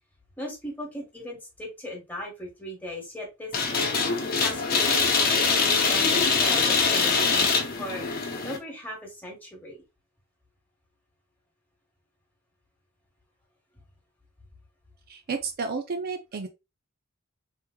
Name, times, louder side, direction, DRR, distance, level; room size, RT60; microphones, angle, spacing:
voice 1, 0.4-8.1 8.4-9.8, equal, 10° left, 1.4 m, -38 dB
sound 1, 3.5-8.6, left 5 dB, 45° left, 0.7 m, -23 dB
voice 2, 15.1-16.5, right 4 dB, 50° right, 0.4 m, -31 dB
3.5 x 3.0 x 2.2 m
head